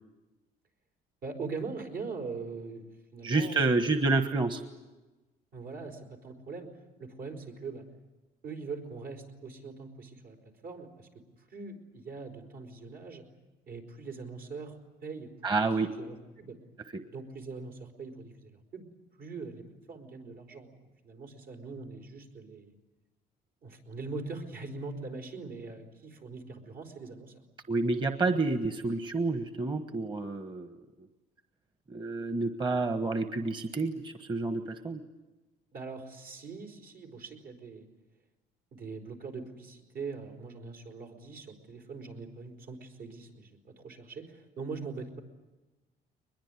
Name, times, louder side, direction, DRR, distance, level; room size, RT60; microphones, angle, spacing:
voice 1, 1.2-4.0 5.5-6.7 7.0-7.8 8.4-10.4 10.6-11.1 11.5-13.2 13.7-15.3 16.0-16.6 17.1-18.8 19.2-20.7 21.0-22.7 23.6-27.4 35.7-37.9 38.7-45.2, right 4 dB, 70° right, 3 dB, 4.8 m, -42 dB
voice 2, 3.2-4.6 15.4-15.9 16.9-17.0 27.7-30.8 31.9-35.0, right 3 dB, 30° right, 7 dB, 1.4 m, -29 dB
22.5 x 21.5 x 9.8 m, 1.2 s
cardioid pair, 110°, 17 cm